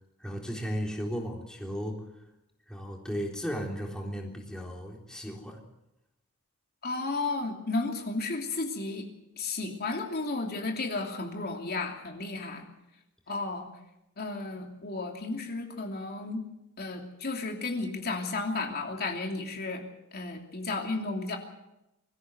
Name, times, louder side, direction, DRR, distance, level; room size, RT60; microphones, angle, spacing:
voice 1, 0.2-2.0 2.7-5.6, equal, 5° left, 0 dB, 3.7 m, -35 dB
voice 2, 6.8-9.0 9.4-12.6 13.3-13.7 14.2-16.4 16.8-19.8 20.1-21.4, left 3 dB, 45° left, 2 dB, 2.9 m, -33 dB
24.0 x 15.0 x 8.1 m, 0.89 s
head